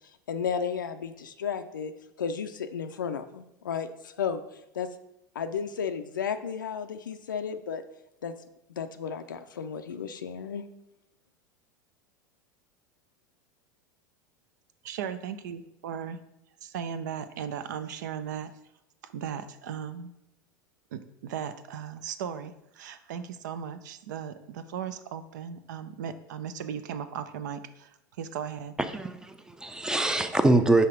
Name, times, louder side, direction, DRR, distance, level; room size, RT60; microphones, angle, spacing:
voice 1, 0.3-1.9 2.2-4.4 4.7-4.9 5.4-7.8 8.2-8.3 8.8-10.6, left 7 dB, 80° left, 8 dB, 0.4 m, -33 dB
voice 2, 14.8-16.2 16.6-18.5 19.0-20.1 20.9-28.7, right 8 dB, 65° right, 11 dB, 0.5 m, -37 dB
voice 3, 28.8-30.9, right 2 dB, 5° right, 9 dB, 0.5 m, -24 dB
5.6 x 3.5 x 5.0 m, 0.86 s
figure-of-eight pair, 85°, 10 cm